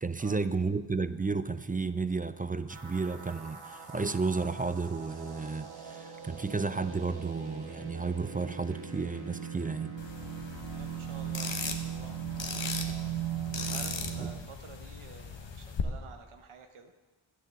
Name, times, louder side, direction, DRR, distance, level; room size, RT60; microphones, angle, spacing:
voice 1, 0.0-9.9 14.2-14.3, right 4 dB, 20° right, 13 dB, 0.4 m, -32 dB
sound 1, 2.7-14.3, right 9 dB, 65° right, 2.1 m, -39 dB
sound 2, 10.0-15.8, left 5 dB, 65° left, 1.2 m, -38 dB
voice 2, 10.7-12.2 13.7-16.9, right 5 dB, 90° right, 5 dB, 0.8 m, -50 dB
9.6 x 6.3 x 7.4 m, 1.2 s
cardioid pair, 45°, 48 cm